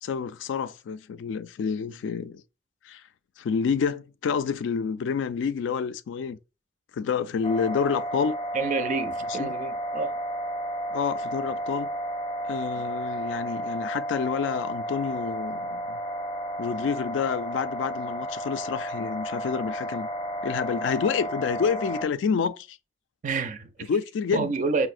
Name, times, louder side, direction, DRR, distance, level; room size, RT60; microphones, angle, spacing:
voice 1, 0.0-2.4 2.8-3.0 3.4-6.4 6.9-8.4 9.3-9.5 10.9-11.9 12.5-16.0 16.6-20.1 20.4-22.8 23.9-24.5, left 6 dB, 80° left, 0.3 m, -28 dB
sound 1, 7.4-22.1, right 1 dB, 30° left, 0.6 m, -32 dB
voice 2, 8.5-10.1 23.2-23.7 24.3-24.9, right 4 dB, 45° right, 0.4 m, -28 dB
4.7 x 2.0 x 2.4 m
head